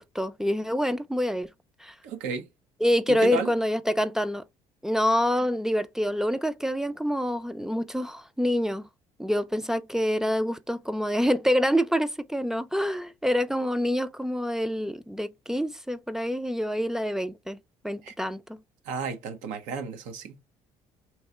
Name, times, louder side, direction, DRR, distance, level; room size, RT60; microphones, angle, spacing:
voice 1, 0.0-1.5 1.8-1.9 2.8-4.4 4.8-8.9 9.2-17.6 17.8-18.6, equal, 5° right, 0.4 m, -26 dB
voice 2, 2.0-2.5 3.1-3.5 18.0-18.1 18.8-20.4, right 5 dB, 85° right, 1.0 m, -33 dB
3.1 x 2.8 x 4.4 m
supercardioid pair, 85°, 13 cm